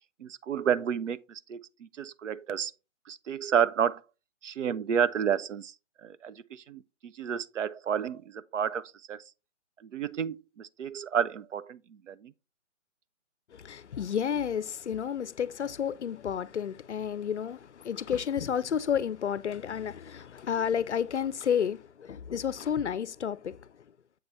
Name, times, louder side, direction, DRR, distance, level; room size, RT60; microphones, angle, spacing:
voice 1, 0.2-2.7 3.1-4.0 4.4-5.7 6.0-9.2 9.9-12.3, right 8 dB, 70° right, 0.5 m, -31 dB
voice 2, 13.5-23.7, left 8 dB, 60° left, 0.5 m, -31 dB
7.7 x 4.0 x 3.3 m
hypercardioid pair, 180°, 39 cm